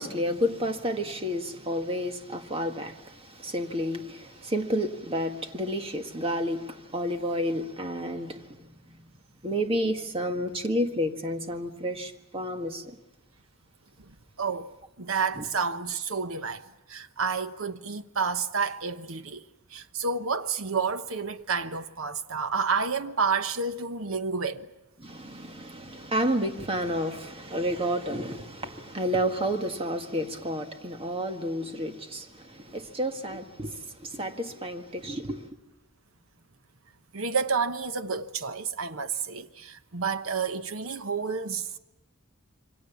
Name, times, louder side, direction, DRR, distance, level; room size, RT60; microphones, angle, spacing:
voice 1, 0.0-9.0 9.4-12.9 15.4-15.5 25.0-35.5, equal, 25° right, 1.7 m, -31 dB
voice 2, 14.4-14.7 15.0-19.4 19.7-24.7 37.1-41.7, right 5 dB, 85° right, 1.1 m, -30 dB
27.5 x 24.0 x 7.2 m
head